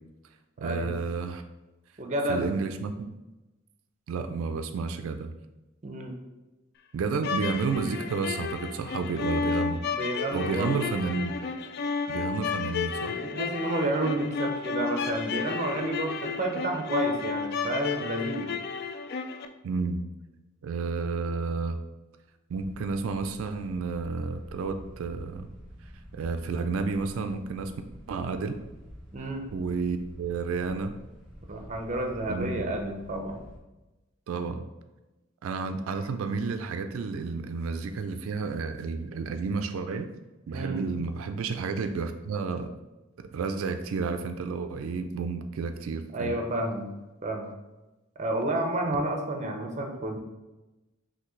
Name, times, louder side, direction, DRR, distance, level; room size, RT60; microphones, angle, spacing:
voice 1, 0.6-1.4 2.3-3.1 4.1-5.3 6.9-9.8 10.3-11.4 12.1-13.2 19.6-20.0 20.6-21.8 22.5-25.5 26.1-27.7 28.1-28.6 29.5-30.9 32.3-32.6 34.3-34.7 35.4-40.1 40.5-42.7 43.2-46.3, right 4 dB, 80° right, 8 dB, 0.3 m, -31 dB
voice 2, 2.0-2.5 5.8-6.2 9.9-10.9 13.1-18.5 29.1-29.4 31.5-33.4 40.5-40.8 46.1-46.9 47.2-47.5 48.2-50.2, right 1 dB, 35° right, 3 dB, 0.6 m, -30 dB
sound 1, 7.1-19.5, left 5 dB, 50° left, 0.3 m, -32 dB
sound 2, 22.5-33.6, equal, 5° right, 1.1 m, -48 dB
5.7 x 2.7 x 3.1 m, 1.1 s
head